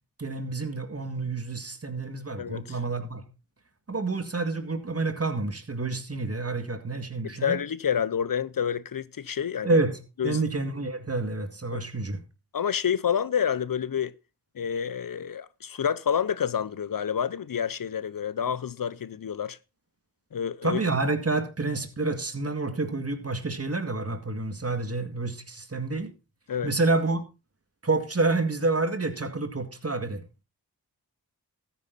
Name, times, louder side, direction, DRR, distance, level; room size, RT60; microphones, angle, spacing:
voice 1, 0.2-3.2 3.9-7.6 9.6-12.2 20.6-26.1 26.6-27.2 27.8-30.2, right 3 dB, 40° right, 2.2 m, -28 dB
voice 2, 2.4-2.8 7.4-9.8 10.2-10.4 11.7-11.9 12.5-14.1 14.5-19.6 20.3-20.8 26.5-26.7, left 8 dB, 65° left, 0.7 m, -28 dB
13.5 x 9.5 x 4.0 m
cardioid pair, 50°, 37 cm